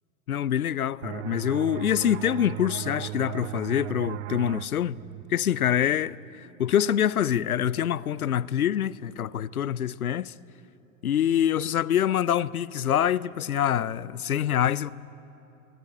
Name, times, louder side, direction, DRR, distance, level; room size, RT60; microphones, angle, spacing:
voice 1, 0.3-5.0 5.3-10.3 11.0-14.9, left 10 dB, 85° left, 0.7 m, -25 dB
sound 1, 1.0-6.4, right 18 dB, 60° right, 0.5 m, -37 dB
30.0 x 20.0 x 8.5 m
hypercardioid pair, 95°, 42 cm